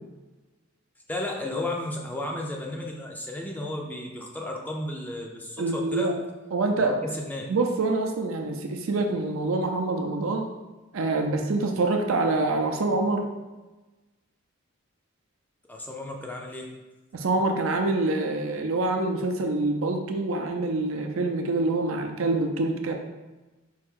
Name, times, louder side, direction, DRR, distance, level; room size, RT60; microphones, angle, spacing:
voice 1, 1.1-6.2 6.7-7.5 15.7-16.7, left 1 dB, 10° left, 0 dB, 0.4 m, -33 dB
voice 2, 5.6-6.2 6.5-7.0 7.5-10.5 10.9-13.3 17.1-22.9, right 2 dB, 70° right, 4 dB, 0.5 m, -26 dB
4.5 x 2.5 x 3.6 m, 1.1 s
head